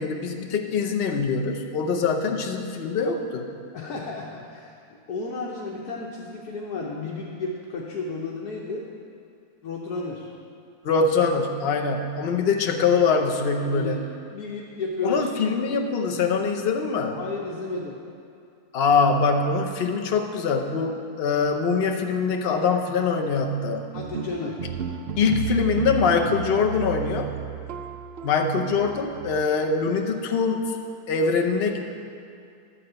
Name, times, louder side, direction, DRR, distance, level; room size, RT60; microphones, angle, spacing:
voice 1, 0.0-3.5 10.8-14.0 15.0-17.2 18.7-23.9 25.2-27.4 28.2-30.8 31.1-31.8, left 5 dB, 50° left, 2 dB, 0.8 m, -23 dB
voice 2, 3.7-8.9 9.6-10.3 13.7-14.0 14.3-15.3 17.1-18.0 23.9-24.6, left 3 dB, 80° left, -3 dB, 1.5 m, -33 dB
sound 1, 23.9-29.4, right 7 dB, 65° right, 0.6 m, -33 dB
11.5 x 4.2 x 7.8 m, 2.5 s
omnidirectional pair, 1.6 m